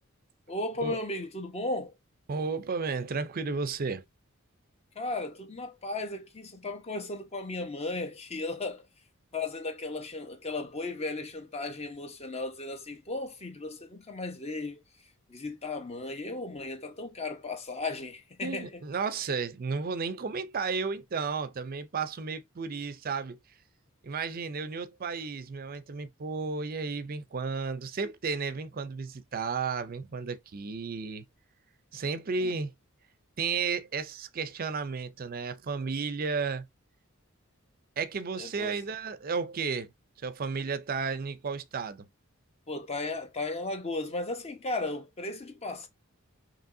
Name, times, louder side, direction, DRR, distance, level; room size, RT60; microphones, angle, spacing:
voice 1, 0.5-1.9 4.9-8.8 9.3-14.8 15.3-18.8 32.4-32.5 38.4-38.8 42.7-45.9, left 2 dB, 30° left, 1.0 m, -35 dB
voice 2, 2.3-4.0 18.4-23.4 24.0-31.3 31.9-32.7 33.4-36.7 38.0-39.9 40.2-42.1, right 5 dB, 45° right, 0.5 m, -33 dB
5.3 x 3.0 x 2.6 m
head